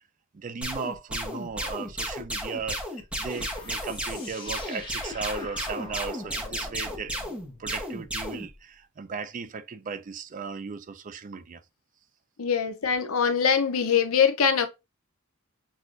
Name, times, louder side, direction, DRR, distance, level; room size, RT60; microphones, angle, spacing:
voice 1, 0.3-7.2 7.6-11.6, right 5 dB, 35° right, 0.4 m, -36 dB
sound 1, 0.6-8.5, equal, 5° right, 0.9 m, -33 dB
sound 2, 3.3-8.6, left 2 dB, 20° left, 1.3 m, -45 dB
voice 2, 12.4-14.7, left 7 dB, 75° left, 0.7 m, -23 dB
6.1 x 2.5 x 2.5 m
head